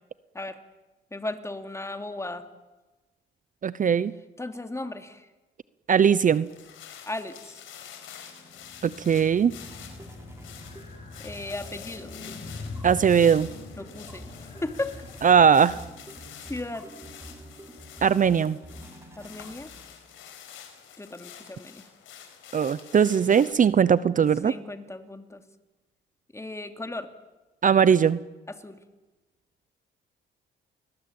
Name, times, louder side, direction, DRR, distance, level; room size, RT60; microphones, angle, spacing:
voice 1, 1.1-2.5 4.4-5.3 7.1-7.6 11.2-12.1 13.8-14.2 14.6-14.9 16.2-16.9 19.2-19.7 21.0-21.9 24.4-25.4 26.3-27.1 28.6-28.8, left 2 dB, 15° left, 7 dB, 2.8 m, -36 dB
voice 2, 3.6-4.1 5.9-6.5 8.8-9.5 12.8-13.5 15.2-15.8 18.0-18.6 22.5-24.5 27.6-28.2, right 7 dB, 40° right, 17 dB, 0.8 m, -20 dB
sound 1, 6.3-23.5, left 9 dB, 85° left, 5.1 m, -47 dB
sound 2, 7.6-20.3, equal, 15° right, 5.2 m, -48 dB
sound 3, 8.6-16.0, left 3 dB, 35° left, 6.6 m, -43 dB
29.5 x 21.0 x 8.8 m, 1.1 s
cardioid pair, 90°, 20 cm